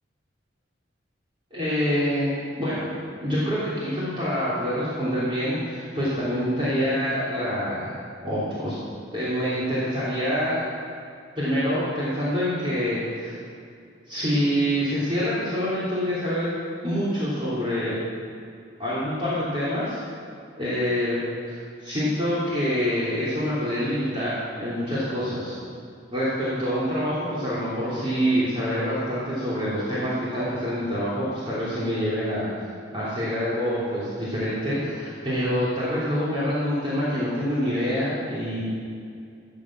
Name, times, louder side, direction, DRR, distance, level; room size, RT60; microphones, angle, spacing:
voice 1, 1.5-2.3 2.6-2.9 3.2-8.8 9.1-10.6 11.4-13.3 14.1-16.5 16.8-18.0 18.8-20.0 20.6-21.2 21.5-25.6 26.1-32.5 32.9-38.6, equal, 30° right, -11 dB, 3.5 m, -26 dB
13.5 x 7.6 x 7.6 m, 2.4 s
head